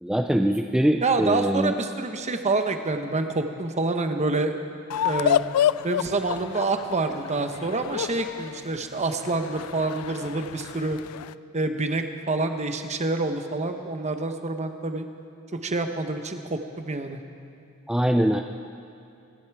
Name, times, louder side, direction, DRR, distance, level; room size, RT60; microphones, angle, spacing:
voice 1, 0.0-1.7 17.9-18.4, equal, 5° right, 4 dB, 0.4 m, -22 dB
voice 2, 1.0-4.6 5.0-5.4 5.8-11.0 11.5-15.0 15.5-17.2, right 3 dB, 30° right, 7 dB, 1.0 m, -27 dB
sound 1, 4.9-11.3, left 10 dB, 80° left, 0.3 m, -29 dB
25.0 x 11.0 x 4.7 m, 2.7 s
head